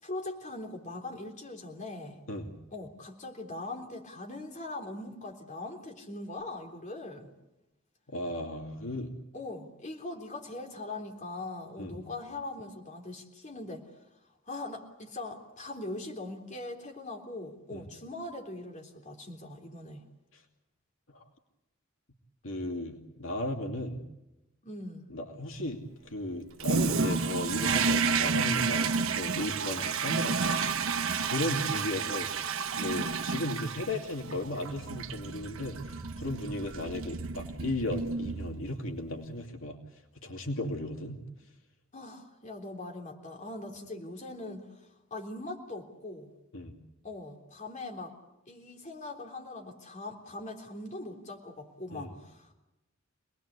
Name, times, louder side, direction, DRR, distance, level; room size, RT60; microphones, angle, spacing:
voice 1, 0.0-2.2 2.7-7.3 9.3-13.8 14.5-20.0 24.6-25.1 41.9-46.3 47.0-48.1 48.5-52.6, left 2 dB, 35° left, 2 dB, 3.6 m, -41 dB
voice 2, 8.1-9.1 11.8-12.0 17.7-17.9 20.3-20.4 22.4-24.0 25.1-39.8 40.2-41.2 46.5-46.8 51.9-52.1, left 1 dB, 75° left, 3 dB, 2.7 m, -36 dB
Toilet flush, 26.6-38.9, right 5 dB, 85° right, 1.0 m, -31 dB
26.5 x 20.0 x 8.3 m, 0.97 s
head